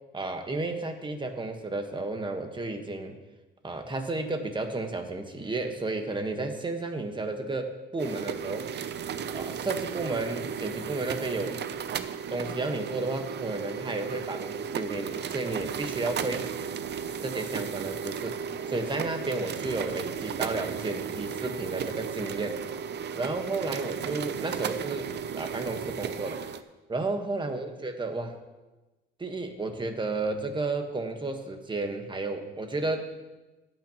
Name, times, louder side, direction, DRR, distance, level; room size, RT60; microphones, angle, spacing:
voice 1, 0.1-3.2 3.6-8.7 9.3-11.6 12.3-16.5 17.2-22.6 23.1-26.4 26.9-28.4 29.2-33.1, right 2 dB, 25° right, 5 dB, 1.4 m, -32 dB
sound 1, 8.0-26.6, right 7 dB, 60° right, 0.6 m, -35 dB
15.0 x 9.0 x 3.0 m, 1.1 s
cardioid pair, 90°, 20 cm